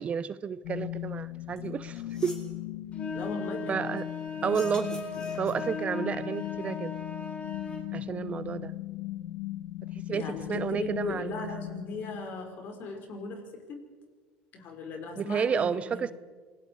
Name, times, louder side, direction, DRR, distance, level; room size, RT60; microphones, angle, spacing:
voice 1, 0.0-2.3 3.7-4.1 4.4-5.0 5.4-6.9 7.9-8.7 10.1-11.3 15.2-16.1, right 7 dB, 35° right, 0.7 m, -31 dB
sound 1, 0.6-12.6, left 14 dB, 80° left, 1.2 m, -38 dB
sound 2, 1.6-1.7 1.9-2.5 4.4-5.8, left 1 dB, 20° left, 5.2 m, -47 dB
sound 3, 2.9-7.9, left 3 dB, 35° left, 3.2 m, -37 dB
voice 2, 3.1-3.8 4.4-4.8 10.1-13.4 14.5-16.1, left 3 dB, 55° left, 5.2 m, -38 dB
27.5 x 20.0 x 4.8 m
supercardioid pair, 100°, 4 cm